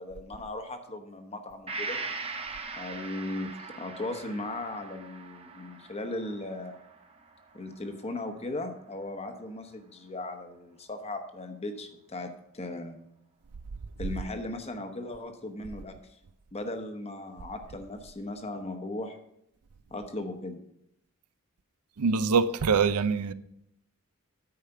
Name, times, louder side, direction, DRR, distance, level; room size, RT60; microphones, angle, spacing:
voice 1, 0.0-2.0 2.8-6.8 7.5-13.0 14.0-16.0 16.5-19.2 19.9-20.6, left 2 dB, 30° left, 0.9 m, -37 dB
Gong, 1.7-9.3 9.7-9.8, right 3 dB, 25° right, 0.8 m, -41 dB
voice 2, 22.0-23.3, right 5 dB, 85° right, 0.5 m, -24 dB
9.6 x 5.0 x 6.8 m
head